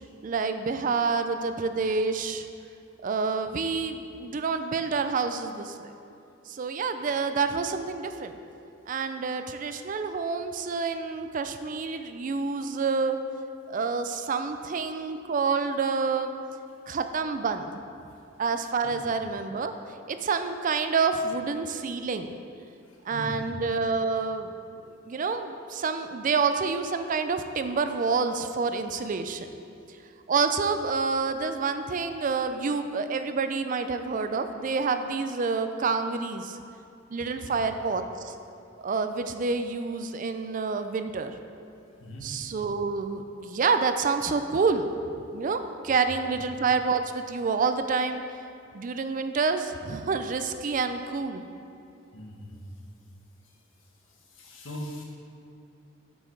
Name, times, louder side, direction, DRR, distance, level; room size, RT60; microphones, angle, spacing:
voice 1, 0.2-2.5 3.0-5.9 6.5-8.3 8.9-13.2 13.7-16.3 16.9-17.8 18.4-19.7 20.1-22.3 23.0-24.5 25.1-29.5 30.3-36.6 37.1-38.3 38.8-41.3 42.2-48.2 48.7-51.4, right 4 dB, 45° right, 9 dB, 0.4 m, -28 dB
voice 2, 22.8-23.4 37.4-37.6 42.0-42.4 46.3-46.4 52.1-52.6 53.4-53.5 54.1-55.0, equal, 85° left, -2 dB, 1.4 m, -41 dB
8.3 x 5.6 x 4.6 m, 2.6 s
head